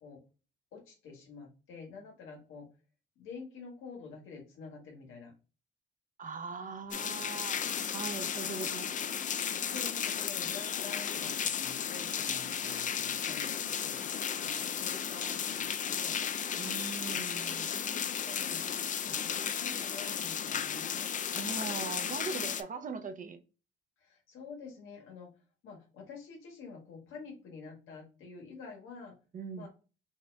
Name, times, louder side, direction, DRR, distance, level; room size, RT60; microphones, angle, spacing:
voice 1, 0.7-2.7 3.1-5.3 8.3-8.7 9.6-16.2 17.1-17.5 17.9-18.6 19.0-21.1 21.7-21.9 24.0-25.3 25.6-29.1 29.5-29.7, left 5 dB, 90° left, 1.6 m, -49 dB
voice 2, 6.2-8.9 16.6-17.7 21.3-23.4 29.3-29.7, right 4 dB, 40° right, 0.7 m, -40 dB
sound 1, 6.9-22.6, left 8 dB, 40° left, 0.4 m, -34 dB
5.4 x 2.5 x 2.2 m
cardioid pair, 90°, 20 cm